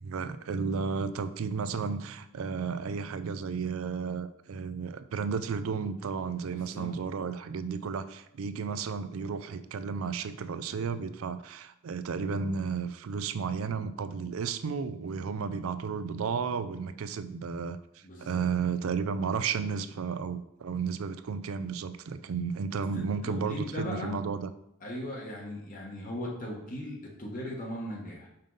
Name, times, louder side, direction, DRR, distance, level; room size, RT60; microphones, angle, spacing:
voice 1, 0.0-24.5, right 5 dB, 80° right, 12 dB, 0.4 m, -33 dB
voice 2, 6.5-6.9 18.0-18.4 23.2-24.2 24.8-28.3, left 1 dB, 40° left, -2 dB, 1.3 m, -38 dB
5.4 x 5.2 x 3.9 m, 0.81 s
head